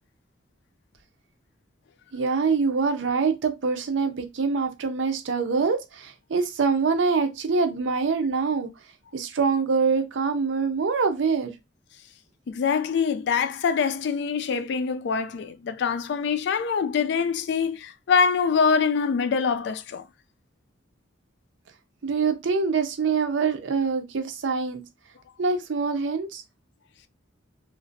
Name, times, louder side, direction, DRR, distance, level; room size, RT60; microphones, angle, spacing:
voice 1, 2.1-8.7 9.1-11.5 22.0-24.8 25.4-26.4, right 5 dB, 70° right, 0.5 m, -24 dB
voice 2, 12.5-20.1, left 6 dB, 60° left, 0.3 m, -24 dB
2.8 x 2.5 x 2.5 m
head